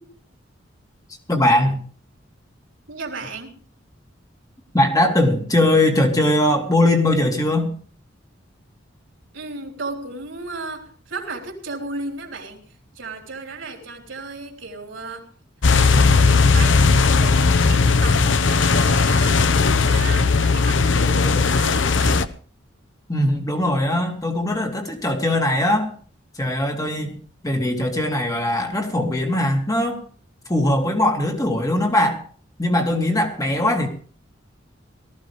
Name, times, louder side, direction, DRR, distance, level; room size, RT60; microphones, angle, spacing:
voice 1, 1.3-1.8 4.7-7.7 23.1-25.9 26.3-27.2 27.4-30.0 30.5-32.2 32.6-33.9, left 1 dB, 20° left, 3 dB, 2.6 m, -20 dB
voice 2, 2.9-3.5 9.3-12.6 12.9-15.3 15.8-19.6 19.8-22.3, right 3 dB, 80° right, 1 dB, 3.8 m, -34 dB
sound 1, 15.6-22.3, left 4 dB, 70° left, 0.9 m, -17 dB
18.5 x 14.5 x 3.5 m, 0.42 s
head